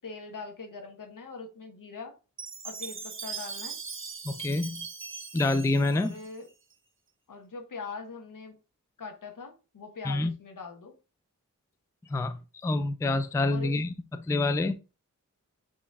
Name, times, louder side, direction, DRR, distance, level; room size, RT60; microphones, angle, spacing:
voice 1, 0.0-2.1 2.6-3.8 5.9-6.5 7.3-8.6 9.0-10.9 13.5-13.7, left 4 dB, 75° left, 1.1 m, -42 dB
Chime, 2.4-6.7, right 5 dB, 40° right, 0.7 m, -40 dB
voice 2, 4.2-4.9 5.3-6.2 10.1-10.3 12.1-14.7, left 2 dB, 10° left, 0.3 m, -27 dB
4.6 x 3.0 x 3.4 m
wide cardioid pair, 105°, 32 cm